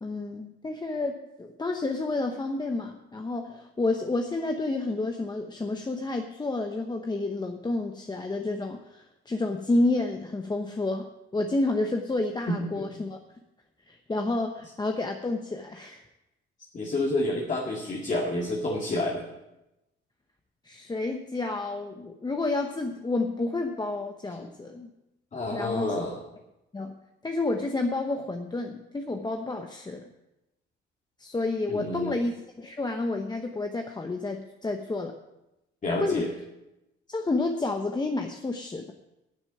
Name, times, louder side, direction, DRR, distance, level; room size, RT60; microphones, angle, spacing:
voice 1, 0.0-13.2 13.9-16.0 20.6-24.9 25.5-25.9 26.7-27.0 27.2-30.1 31.2-35.2 36.0-36.3 37.1-38.9, left 2 dB, 20° left, 4 dB, 0.9 m, -30 dB
voice 2, 12.5-12.8 16.7-19.3 24.4-24.5 25.3-26.1 31.7-32.2 35.8-36.3, left 1 dB, 40° left, -1 dB, 2.0 m, -29 dB
9.5 x 8.1 x 7.7 m, 0.93 s
cardioid pair, 90°, 20 cm